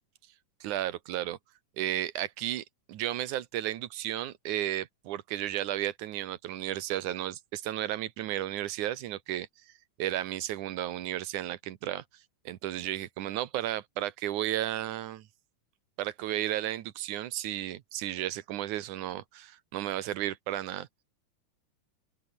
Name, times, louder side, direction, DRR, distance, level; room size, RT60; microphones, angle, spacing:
voice 1, 0.6-1.4 1.8-9.5 10.0-12.0 12.5-15.3 16.0-20.9, right 13 dB, 70° right, 2.5 m, -33 dB
open air
omnidirectional pair, 3.8 m